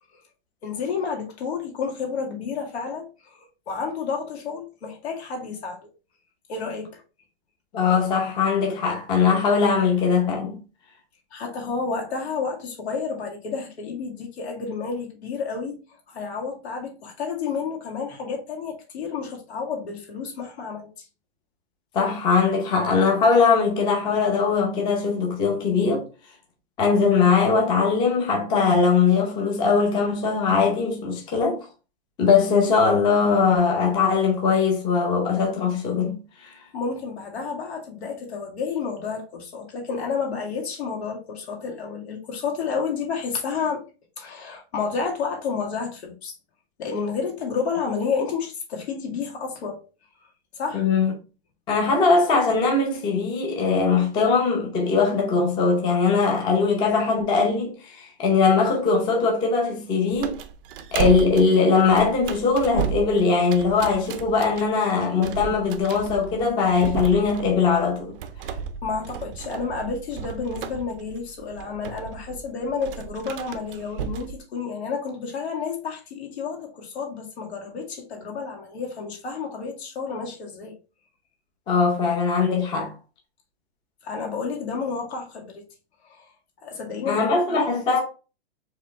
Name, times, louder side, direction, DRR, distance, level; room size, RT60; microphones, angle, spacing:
voice 1, 0.6-5.9 6.5-7.0 11.3-15.8 16.1-21.1 36.7-43.8 44.2-46.3 46.8-49.8 50.5-50.9 68.8-80.7 84.0-85.6 86.0-86.3 86.6-88.0, left 5 dB, 80° left, 2.1 m, -30 dB
voice 2, 7.7-10.6 21.9-26.1 26.8-31.6 32.2-36.1 36.4-36.5 50.7-51.1 51.7-60.4 60.9-68.2 81.7-82.9 87.1-88.0, left 5 dB, 15° left, 0.6 m, -21 dB
sound 1, 60.1-74.4, right 8 dB, 55° right, 0.6 m, -34 dB
4.8 x 3.2 x 3.0 m
hypercardioid pair, 160°, 32 cm